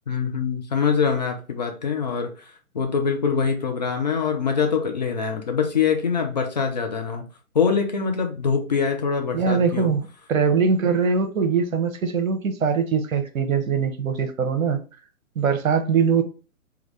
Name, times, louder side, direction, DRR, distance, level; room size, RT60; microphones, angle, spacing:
voice 1, 0.1-7.2 7.5-9.9, left 6 dB, 35° left, 0.4 m, -24 dB
voice 2, 9.3-14.8 15.4-16.2, right 6 dB, 70° right, 0.8 m, -22 dB
3.5 x 2.3 x 3.1 m
figure-of-eight pair, 130°, 43 cm